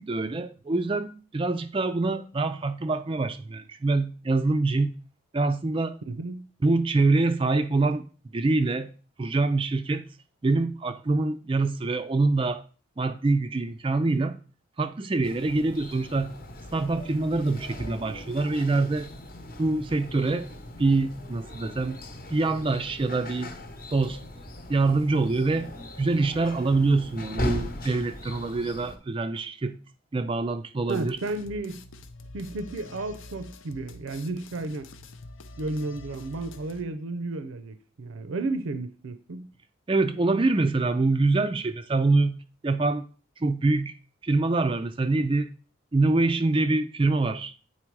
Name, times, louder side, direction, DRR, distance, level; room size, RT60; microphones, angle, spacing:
voice 1, 0.0-4.9 5.3-6.0 6.6-8.9 9.2-10.0 10.4-12.6 13.0-14.4 14.8-16.3 16.7-19.1 19.6-20.5 20.8-22.0 22.3-23.5 23.9-24.2 24.7-25.7 26.0-29.8 30.1-31.2 39.9-42.4 42.6-43.1 43.4-43.9 44.2-45.5 45.9-47.5, right 3 dB, 25° right, 0.3 m, -25 dB
voice 2, 6.1-6.4 30.9-31.8 32.3-34.9 35.6-39.5, right 2 dB, 80° right, 0.5 m, -33 dB
sound 1, 15.2-29.0, left 1 dB, 45° left, 0.9 m, -38 dB
sound 2, 30.9-36.8, left 2 dB, 75° left, 0.6 m, -46 dB
8.6 x 4.3 x 4.6 m
head